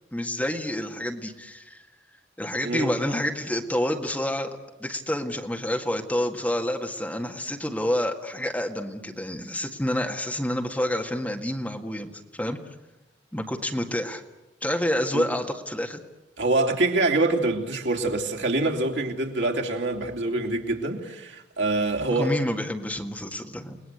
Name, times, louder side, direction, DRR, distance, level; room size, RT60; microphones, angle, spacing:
voice 1, 0.1-1.8 2.4-12.6 13.3-14.2 14.6-16.0 22.1-23.8, left 1 dB, 10° left, 1.9 m, -28 dB
voice 2, 16.4-22.4, right 2 dB, 75° right, 3.1 m, -25 dB
30.0 x 20.0 x 8.0 m
head